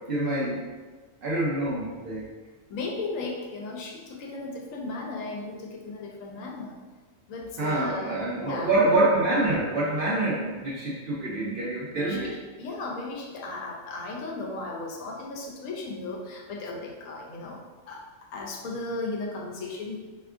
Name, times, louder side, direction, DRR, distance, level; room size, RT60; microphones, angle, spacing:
voice 1, 0.1-0.7 1.2-2.2 7.6-12.3, right 2 dB, 60° right, -5 dB, 0.6 m, -26 dB
voice 2, 2.7-6.8 7.3-8.8 11.9-12.3 12.6-18.0 18.3-20.1, left 3 dB, 80° left, 0 dB, 1.0 m, -36 dB
3.4 x 2.7 x 2.4 m, 1.3 s
omnidirectional pair, 1.4 m